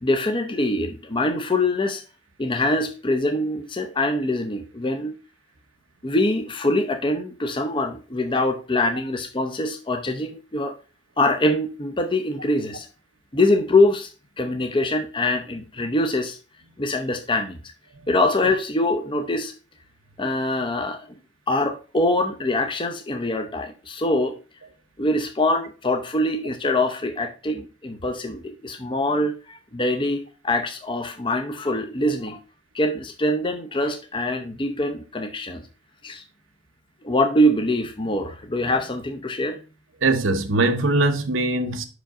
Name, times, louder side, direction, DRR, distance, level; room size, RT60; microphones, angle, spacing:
voice 1, 0.0-2.0 2.4-5.1 6.0-10.7 11.2-12.9 13.3-14.1 14.4-16.4 16.8-17.6 18.1-19.5 20.2-21.1 21.5-24.4 25.0-32.4 32.7-35.7 36.0-36.2 37.0-39.6, left 1 dB, 25° left, 0.6 m, -24 dB
voice 2, 40.0-41.8, right 2 dB, 75° right, 0.9 m, -21 dB
5.6 x 5.2 x 3.6 m
head